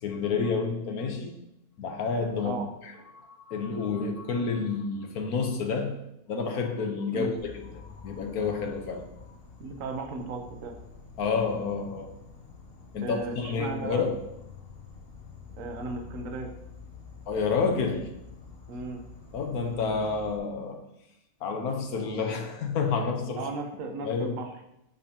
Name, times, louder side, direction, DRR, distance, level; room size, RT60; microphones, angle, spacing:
voice 1, 0.0-1.4 1.8-2.6 2.8-2.9 3.2-6.0 6.3-9.1 11.2-12.1 12.9-14.1 17.3-18.1 19.3-20.8 21.4-23.5 24.0-24.4, left 5 dB, 90° left, 3 dB, 1.4 m, -29 dB
Insect, 7.4-20.4, left 5 dB, 50° left, 0.9 m, -47 dB
voice 2, 9.6-10.8 13.0-14.0 15.6-16.5 18.7-19.0 23.4-24.5, right 3 dB, 65° right, 4 dB, 1.2 m, -35 dB
7.9 x 5.2 x 2.8 m, 0.82 s
omnidirectional pair, 1.5 m